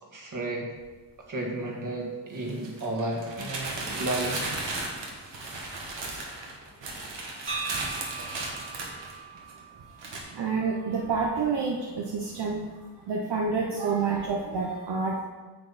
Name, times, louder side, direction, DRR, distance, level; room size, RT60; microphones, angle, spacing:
voice 1, 0.0-0.7 1.2-4.4, right 2 dB, 45° right, 0 dB, 2.0 m, -33 dB
sound 1, 0.8-0.9 2.4-9.6 10.0-10.2, right 2 dB, 85° right, 1.9 m, -35 dB
sound 2, 7.5-11.5, right 4 dB, 30° right, 1.6 m, -40 dB
voice 2, 10.0-15.3, right 4 dB, 70° right, -1 dB, 1.0 m, -29 dB
9.3 x 7.8 x 4.2 m, 1.4 s
wide cardioid pair, 165°, 42 cm